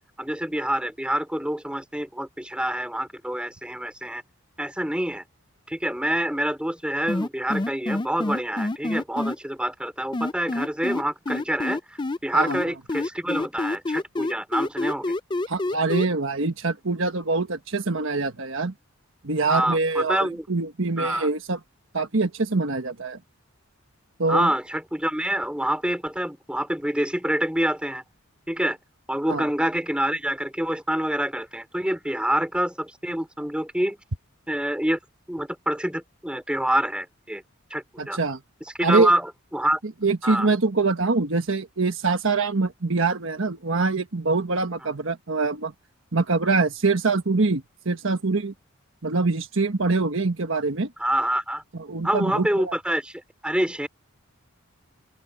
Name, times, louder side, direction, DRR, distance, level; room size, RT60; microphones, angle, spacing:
voice 1, 0.2-4.2 4.6-5.2 5.7-15.1 19.5-20.5 21.0-21.3 24.3-28.0 28.5-28.8 29.1-34.0 34.5-35.0 35.3-37.4 37.7-38.2 38.8-39.3 39.5-39.8 40.2-40.5 51.0-51.6 52.0-53.9, right 1 dB, 5° right, 4.2 m, -26 dB
sound 1, 7.1-9.4 10.1-12.2 12.5-16.1, left 2 dB, 20° left, 0.5 m, -27 dB
voice 2, 15.5-18.7 19.2-21.6 21.9-23.2 24.2-24.5 29.3-29.5 38.0-38.4 38.8-39.1 40.0-45.7 46.1-48.5 49.0-50.9 51.7-52.7, right 3 dB, 65° right, 1.3 m, -24 dB
open air
head